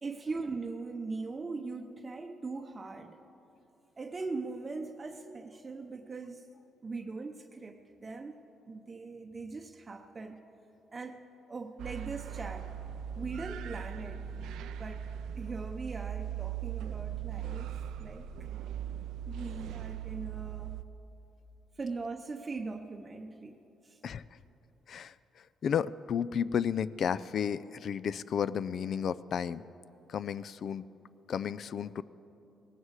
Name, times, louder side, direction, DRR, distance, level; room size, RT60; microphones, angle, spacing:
voice 1, 0.0-3.2 4.0-6.5 6.8-8.4 8.7-10.4 10.9-11.2 11.5-12.7 13.1-15.1 15.4-18.3 19.3-20.8 21.8-24.0, right 3 dB, 30° right, 4 dB, 0.7 m, -40 dB
sound 1, 11.8-20.8, right 9 dB, 85° right, 0.4 m, -39 dB
voice 2, 24.0-24.4 24.9-29.6 30.1-30.9 31.3-32.0, left 8 dB, 60° left, 17 dB, 0.4 m, -33 dB
17.5 x 15.5 x 4.8 m, 2.9 s
cardioid pair, 90°, 0 cm